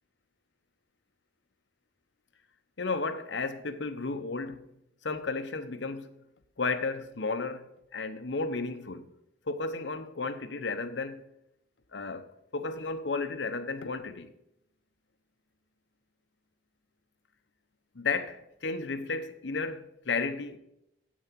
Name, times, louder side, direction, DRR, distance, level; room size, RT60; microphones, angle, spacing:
voice 1, 2.8-4.7 5.0-6.1 6.6-9.1 9.5-11.3 11.9-14.3 17.9-20.6, left 4 dB, 80° left, 0.8 m, -33 dB
8.3 x 6.3 x 7.5 m
head